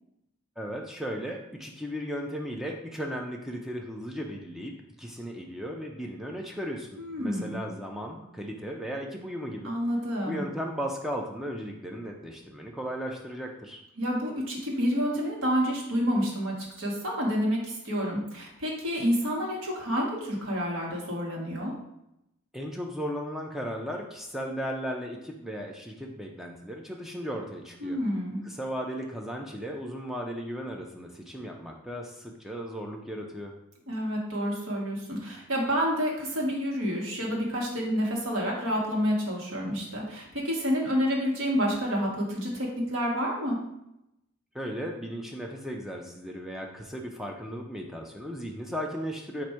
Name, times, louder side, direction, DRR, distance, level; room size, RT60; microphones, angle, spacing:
voice 1, 0.6-4.7 5.0-9.8 10.2-13.8 22.5-28.0 28.4-33.5 44.5-49.4, equal, ahead, 0 dB, 0.4 m, -36 dB
voice 2, 7.0-7.6 9.6-10.4 14.0-21.7 27.8-28.4 33.9-43.6, equal, 75° right, -3 dB, 1.3 m, -29 dB
4.6 x 2.6 x 4.3 m, 0.83 s
head